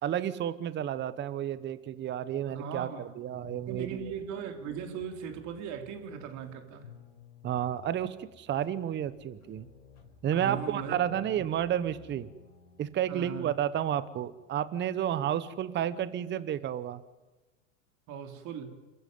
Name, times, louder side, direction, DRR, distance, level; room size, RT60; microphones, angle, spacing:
voice 1, 0.0-4.1 7.4-9.7 10.2-12.3 12.8-17.0, right 10 dB, 30° right, 15 dB, 1.0 m, -31 dB
voice 2, 2.5-3.1 3.7-6.9 10.3-11.0 13.1-13.5 18.1-18.8, right 7 dB, 45° right, 5 dB, 3.5 m, -39 dB
Double bass paso doble, 3.3-16.1, left 6 dB, 80° left, 5.4 m, -56 dB
26.5 x 14.5 x 9.4 m, 1.1 s
hypercardioid pair, 105°, 39 cm